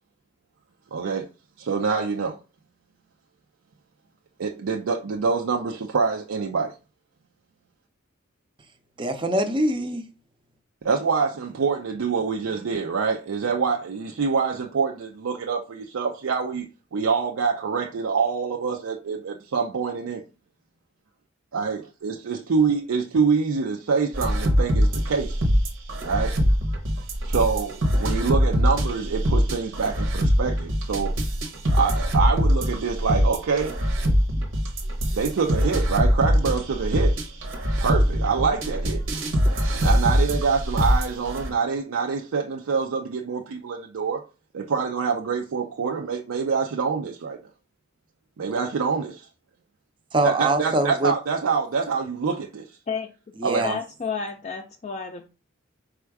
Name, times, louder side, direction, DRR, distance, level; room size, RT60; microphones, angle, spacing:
voice 1, 0.9-1.3 1.6-2.4 4.4-6.7 10.8-16.7 16.9-20.2 21.5-25.4 26.0-26.4 27.2-31.1 31.7-33.7 35.1-37.2 37.8-39.2 39.7-44.2 44.5-47.4 48.4-49.3 50.2-52.6 53.4-53.6, right 5 dB, 90° right, 0.5 m, -25 dB
voice 2, 9.0-10.1 50.1-51.1 53.4-53.8, right 1 dB, 25° right, 0.5 m, -23 dB
sound 1, 24.1-41.5, equal, 65° right, 0.8 m, -23 dB
voice 3, 53.6-55.3, left 5 dB, 35° left, 0.3 m, -31 dB
4.3 x 2.3 x 4.6 m
head